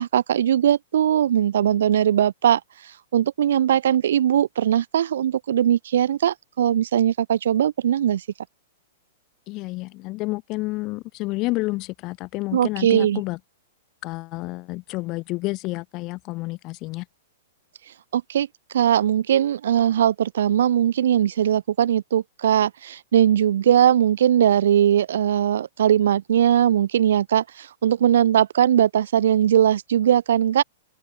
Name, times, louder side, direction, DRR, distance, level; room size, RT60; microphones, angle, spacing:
voice 1, 0.0-2.6 3.1-8.2 12.5-13.2 18.1-18.5 18.7-30.6, right 10 dB, 75° right, 0.5 m, -20 dB
voice 2, 9.5-13.4 14.0-17.1, left 22 dB, 35° left, 4.3 m, -30 dB
open air
hypercardioid pair, 140°, 0 cm